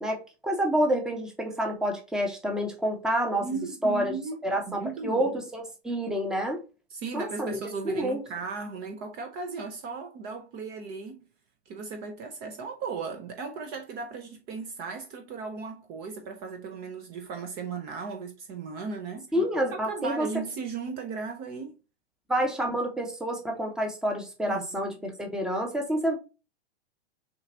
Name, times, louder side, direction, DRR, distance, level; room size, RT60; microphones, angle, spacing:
voice 1, 0.0-3.5 3.8-4.1 4.4-6.6 7.1-7.6 7.8-8.2 19.3-20.3 22.3-26.2, equal, ahead, 0.8 m, -28 dB
voice 2, 3.4-4.4 4.7-5.3 6.9-11.2 11.7-19.3 19.8-21.8 24.5-24.9, right 4 dB, 30° right, 0.6 m, -36 dB
6.4 x 2.4 x 2.7 m
hypercardioid pair, 120°, 33 cm